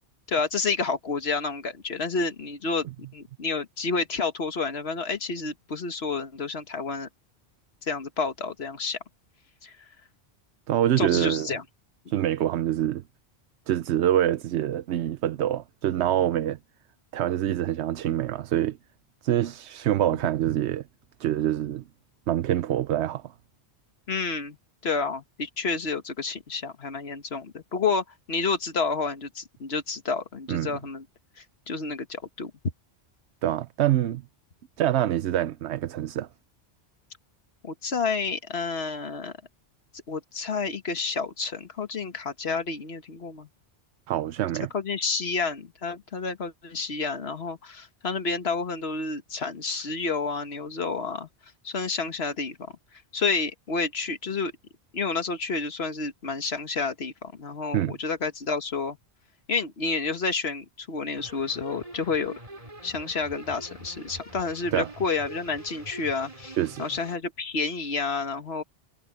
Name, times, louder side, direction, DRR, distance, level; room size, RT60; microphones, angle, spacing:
voice 1, 0.3-2.9 3.1-7.1 7.8-9.0 9.6-9.7 11.0-11.6 24.1-24.6 24.8-31.0 31.4-32.5 37.6-39.3 40.1-43.5 44.7-51.3 51.6-52.6 53.1-54.5 54.9-59.0 59.5-62.3 62.8-68.6, left 4 dB, 65° left, 1.8 m, -30 dB
voice 2, 10.7-11.5 12.1-13.0 13.7-16.6 17.1-18.8 19.2-20.8 21.2-21.8 22.3-23.3 30.5-30.8 33.4-34.2 34.8-36.3 44.1-44.7 57.7-58.0 64.7-64.9 66.6-66.8, right 12 dB, 80° right, 0.9 m, -25 dB
sound 1, 61.1-67.2, right 1 dB, 30° right, 5.9 m, -44 dB
omnidirectional pair, 1.1 m